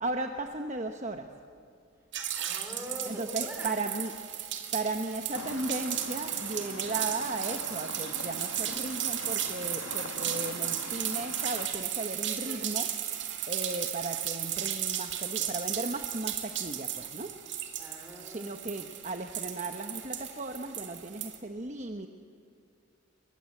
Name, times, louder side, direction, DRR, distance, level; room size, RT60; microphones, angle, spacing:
voice 1, 0.0-1.3 3.0-4.1 4.7-12.9 13.5-17.3 18.2-22.1, right 2 dB, 35° right, 5 dB, 1.1 m, -36 dB
sound 1, 2.1-21.4, right 11 dB, 60° right, 2.5 m, -35 dB
voice 2, 2.4-4.0 12.3-12.7 17.8-18.6, equal, 10° right, 1 dB, 5.0 m, -43 dB
sound 2, 5.3-11.7, left 3 dB, 80° left, 1.5 m, -43 dB
29.5 x 23.0 x 8.6 m, 2.3 s
head